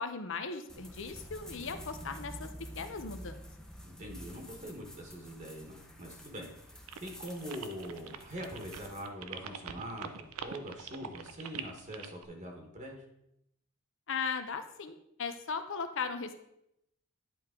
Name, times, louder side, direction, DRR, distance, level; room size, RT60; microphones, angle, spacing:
voice 1, 0.0-2.5 2.8-3.4 14.1-16.3, left 5 dB, 60° left, 9 dB, 0.7 m, -37 dB
sound 1, 0.7-9.0, equal, 5° left, 0.7 m, -49 dB
voice 2, 3.8-6.7 7.0-13.0, equal, 35° right, 1 dB, 1.2 m, -43 dB
sound 2, 6.9-12.3, right 7 dB, 75° right, 0.5 m, -44 dB
10.5 x 4.4 x 3.7 m, 0.80 s
head